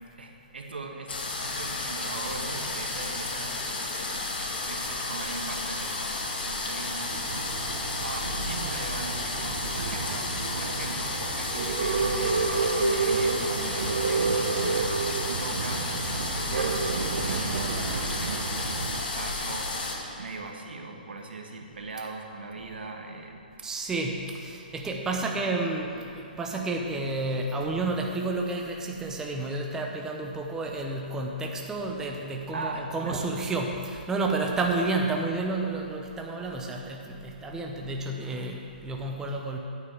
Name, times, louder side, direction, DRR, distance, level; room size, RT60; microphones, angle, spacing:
voice 1, 0.2-1.1 1.4-3.6 4.7-6.1 6.4-7.3 8.0-10.2 10.5-14.7 15.2-18.8 19.1-19.7 20.2-23.7 25.0-25.2 32.5-33.2, right 3 dB, 85° right, 2 dB, 1.5 m, -39 dB
sound 1, 1.1-19.9, left 2 dB, 75° left, 2.0 m, -32 dB
Male speech man speaking / Chatter / Rattle, 7.1-19.0, right 4 dB, 65° right, 0.7 m, -30 dB
voice 2, 23.6-39.6, right 2 dB, 10° right, 1 dB, 0.8 m, -31 dB
9.3 x 5.8 x 7.8 m, 2.6 s
hypercardioid pair, 145°, 5 cm